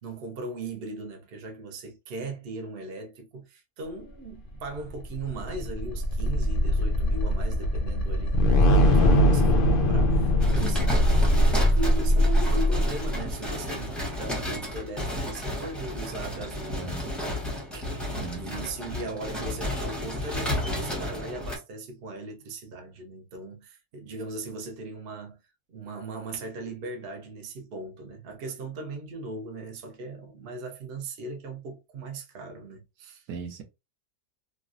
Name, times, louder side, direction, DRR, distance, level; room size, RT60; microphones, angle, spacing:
voice 1, 0.0-17.4 17.7-17.9 18.4-25.4 25.7-33.2, right 2 dB, 50° right, 0.8 m, -38 dB
sound 1, 4.8-13.2, equal, 80° left, 0.5 m, -21 dB
sound 2, 10.4-21.6, left 1 dB, ahead, 0.7 m, -32 dB
voice 2, 10.6-11.0 16.7-17.1 18.1-18.6 33.3-33.6, right 4 dB, 80° right, 1.2 m, -37 dB
3.1 x 2.4 x 2.5 m
omnidirectional pair, 1.6 m